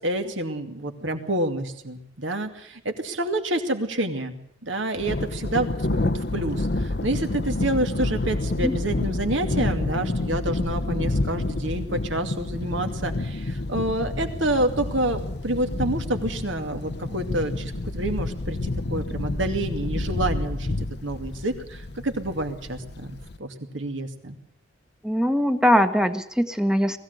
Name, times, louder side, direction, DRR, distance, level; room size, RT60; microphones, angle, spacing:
voice 1, 0.0-20.7 21.0-24.4, right 1 dB, 70° right, 5 dB, 2.5 m, -28 dB
Thunder, 5.0-23.4, left 2 dB, 55° left, 0.8 m, -29 dB
voice 2, 25.0-27.0, equal, 5° right, 8 dB, 1.1 m, -21 dB
20.0 x 16.0 x 8.1 m, 0.69 s
head